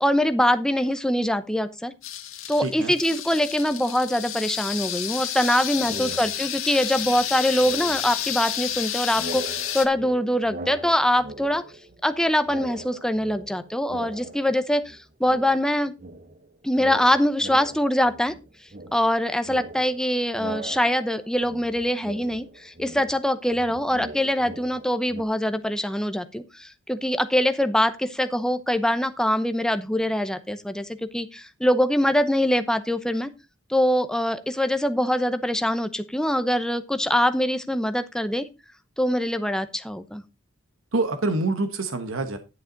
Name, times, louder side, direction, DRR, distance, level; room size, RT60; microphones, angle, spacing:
voice 1, 0.0-1.9 2.5-11.6 12.0-15.9 16.6-18.3 18.9-33.3 33.7-38.5 39.0-40.2, equal, 5° left, 10 dB, 0.7 m, -23 dB
sound 1, 2.0-9.8, left 11 dB, 75° left, 1.6 m, -31 dB
voice 2, 2.6-2.9 5.9-6.2 40.9-42.4, right 2 dB, 75° right, 8 dB, 1.1 m, -26 dB
sound 2, 5.8-6.7 6.9-8.8 9.1-12.2 12.4-15.0 15.3-25.2, right 2 dB, 35° right, 0.9 m, -41 dB
11.0 x 7.3 x 3.9 m, 0.27 s
head